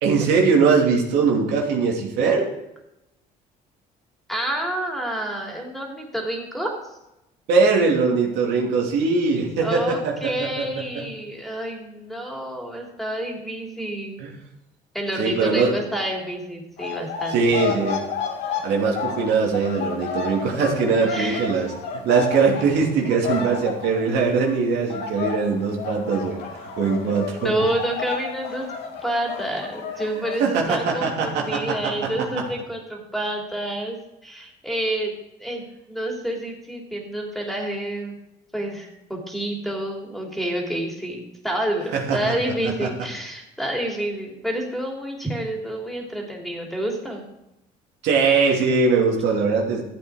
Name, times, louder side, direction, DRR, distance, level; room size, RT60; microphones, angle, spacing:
voice 1, 0.0-2.5 7.5-10.8 14.2-14.3 15.2-15.7 17.3-18.0 18.6-21.7 22.0-26.4 26.8-27.5 30.4-32.1 41.9-42.2 42.6-42.9 48.0-49.8, right 4 dB, 85° right, -1 dB, 2.8 m, -21 dB
voice 2, 4.3-6.8 9.6-14.2 14.9-17.3 21.0-21.4 27.1-28.7 29.0-34.0 34.2-35.1 35.4-38.2 38.5-47.2, right 1 dB, ahead, 0 dB, 3.1 m, -29 dB
sound 1, 16.8-24.6 24.9-30.4, left 6 dB, 85° left, 2.2 m, -31 dB
13.0 x 8.3 x 4.9 m, 0.89 s
cardioid pair, 110°, 17 cm